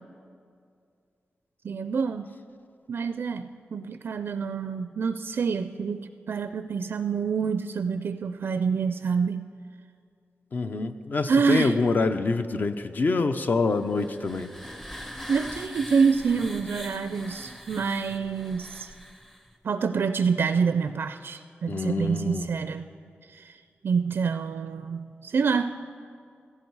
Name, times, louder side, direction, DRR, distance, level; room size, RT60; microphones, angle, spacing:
voice 1, 1.6-2.3 2.9-9.4 11.3-11.7 15.3-18.9 19.6-22.9 23.3-25.8, right 5 dB, 65° right, 10 dB, 0.4 m, -27 dB
voice 2, 10.5-14.5 21.7-22.5, left 3 dB, 45° left, 9 dB, 0.6 m, -26 dB
sound 1, 13.7-19.5, equal, 5° left, 0.7 m, -42 dB
15.5 x 14.5 x 4.7 m, 2.3 s
wide cardioid pair, 150°, 4 cm